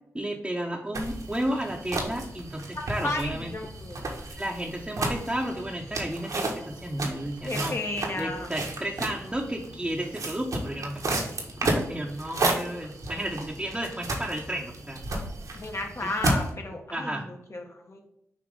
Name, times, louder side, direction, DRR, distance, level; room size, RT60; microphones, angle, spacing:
voice 1, 0.1-3.5 4.4-7.8 8.2-11.2 11.6-15.0 16.9-17.3, right 1 dB, 15° right, -2 dB, 1.1 m, -32 dB
sound 1, 0.9-16.5, right 2 dB, 65° right, 1.5 m, -33 dB
voice 2, 2.7-4.1 7.4-8.5 15.5-18.0, left 2 dB, 50° left, 2 dB, 1.5 m, -33 dB
6.2 x 3.0 x 5.3 m, 0.80 s
supercardioid pair, 40°, 6 cm